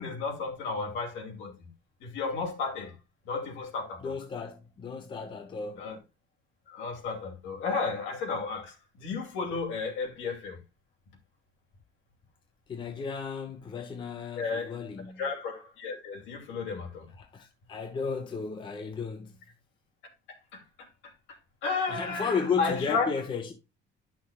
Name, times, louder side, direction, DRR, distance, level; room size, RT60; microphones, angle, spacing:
voice 1, 0.0-1.7 2.0-2.9 3.3-4.1 5.7-6.0 6.7-10.6 14.4-14.7 15.2-17.1 20.5-20.6 21.6-23.1, left 4 dB, 75° left, 2.8 m, -33 dB
voice 2, 4.0-5.9 12.7-15.2 17.2-19.3 21.9-23.5, left 5 dB, 25° left, 0.8 m, -34 dB
11.0 x 5.9 x 2.4 m
cardioid pair, 175°, 20 cm